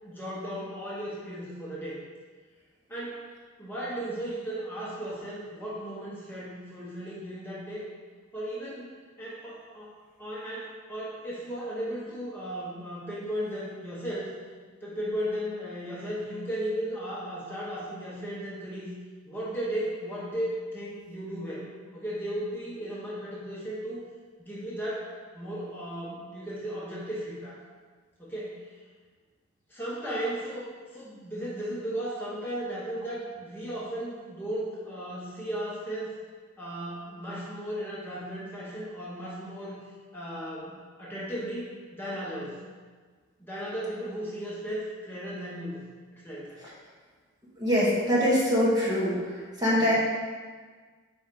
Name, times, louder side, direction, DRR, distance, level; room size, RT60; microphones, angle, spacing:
voice 1, 0.0-2.0 2.9-3.2 3.6-7.8 8.3-8.9 9.2-9.9 10.2-14.3 14.8-18.9 19.2-21.7 21.9-24.0 24.4-25.1 25.3-27.6 28.2-28.8 29.7-36.2 36.6-39.8 40.1-42.6 43.4-45.9 46.1-46.6 49.8-49.9, right 1 dB, 10° left, -8 dB, 1.1 m, -35 dB
voice 2, 47.6-49.2 49.6-49.9, equal, 20° right, -7 dB, 1.2 m, -23 dB
4.4 x 4.4 x 5.2 m, 1.5 s
head